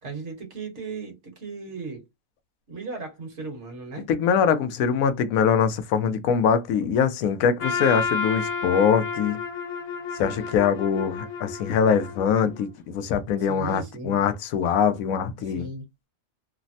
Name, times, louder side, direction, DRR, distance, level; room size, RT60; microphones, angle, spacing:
voice 1, 0.0-2.0 2.7-4.1 10.4-10.5 13.5-14.2 15.4-15.8, right 4 dB, 55° right, 1.3 m, -36 dB
voice 2, 4.1-9.4 10.2-15.7, left 7 dB, 80° left, 1.0 m, -23 dB
Trumpet, 7.6-12.7, left 5 dB, 60° left, 1.3 m, -31 dB
3.2 x 2.0 x 2.6 m
omnidirectional pair, 1.5 m